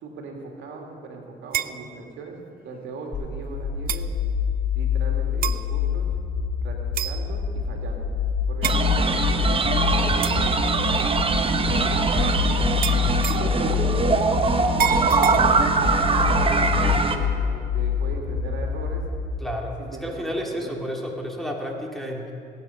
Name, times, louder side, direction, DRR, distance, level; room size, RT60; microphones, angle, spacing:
voice 1, 0.0-2.4 2.6-4.0 4.7-6.1 6.6-6.8 7.0-8.0 8.5-11.3 11.7-13.1 13.4-14.7 15.2-19.0 19.8-20.3 20.6-20.8, right 4 dB, 70° right, 1 dB, 2.4 m, -39 dB
sound 1, 1.5-1.8 2.9-3.0 3.9-4.1 5.4-5.7 7.0-7.3 8.6-8.8 10.2-10.5 12.8-13.5 14.8-15.4, right 11 dB, 45° right, 0.5 m, -28 dB
sound 2, 3.1-19.1, left 7 dB, 20° left, 2.8 m, -26 dB
sound 3, 8.6-17.2, right 4 dB, 25° right, 1.1 m, -22 dB
voice 2, 19.4-22.3, equal, ahead, -1 dB, 2.2 m, -31 dB
20.0 x 8.6 x 5.7 m, 2.5 s
supercardioid pair, 85°, 21 cm